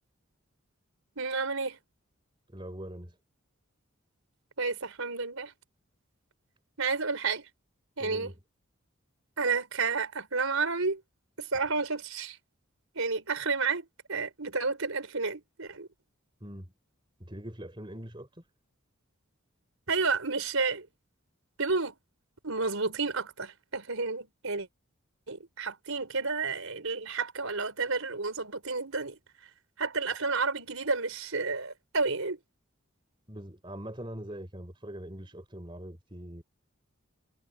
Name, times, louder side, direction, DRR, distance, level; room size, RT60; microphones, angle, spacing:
voice 1, 1.2-1.8 4.6-5.5 6.8-7.5 8.0-8.3 9.4-11.0 11.4-12.4 12.9-15.9 19.9-20.9 21.6-22.0 22.4-24.7 25.3-29.2 29.8-32.4, right 4 dB, 85° right, 4.4 m, -31 dB
voice 2, 2.5-3.2 8.0-8.3 16.4-16.7 17.2-18.4 33.3-36.4, right 1 dB, 25° right, 3.8 m, -42 dB
head